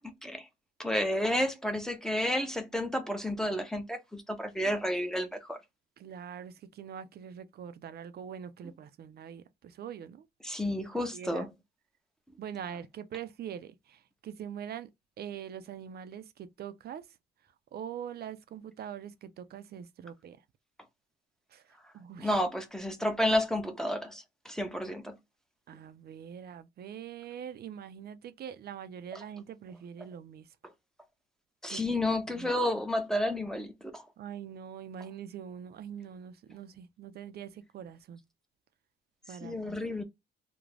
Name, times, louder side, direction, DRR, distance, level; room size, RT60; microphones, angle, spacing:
voice 1, 0.0-0.5 0.8-5.6 10.4-11.5 22.2-25.2 29.1-29.2 31.6-34.1 39.4-40.0, left 1 dB, 5° left, 0.6 m, -31 dB
voice 2, 6.0-10.3 11.1-11.5 12.4-14.9 15.2-17.1 17.7-20.4 21.5-21.6 21.9-22.3 25.7-30.5 31.7-32.0 32.3-32.5 34.2-38.2 39.3-39.8, right 8 dB, 55° right, 0.4 m, -43 dB
2.4 x 2.1 x 3.2 m
cardioid pair, 90°, 20 cm